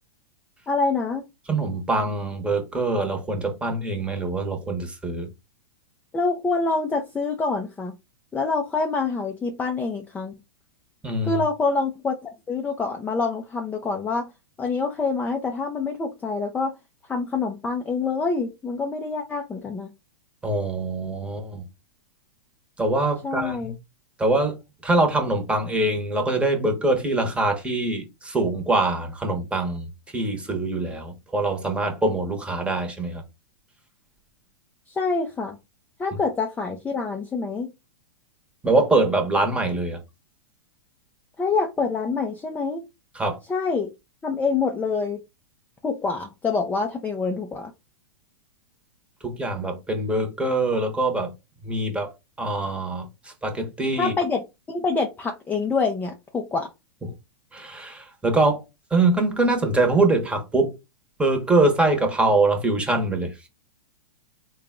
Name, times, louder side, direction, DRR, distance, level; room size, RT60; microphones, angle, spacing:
voice 1, 0.7-1.2 6.1-8.0 8.3-10.3 11.2-14.3 14.6-16.7 17.1-19.9 23.2-23.7 34.9-35.6 36.0-37.7 41.4-42.8 43.5-43.9 44.2-45.2 45.8-47.7 54.0-56.7, left 4 dB, 10° left, 0.5 m, -26 dB
voice 2, 1.5-5.3 11.0-11.4 20.4-21.7 22.8-23.7 24.2-24.6 24.8-33.2 38.6-40.0 43.1-43.4 49.2-51.3 51.6-52.1 52.4-54.1 57.5-58.6 58.9-60.8 61.2-63.5, right 2 dB, 10° right, 1.0 m, -23 dB
3.7 x 2.3 x 3.6 m
hypercardioid pair, 115°, 13 cm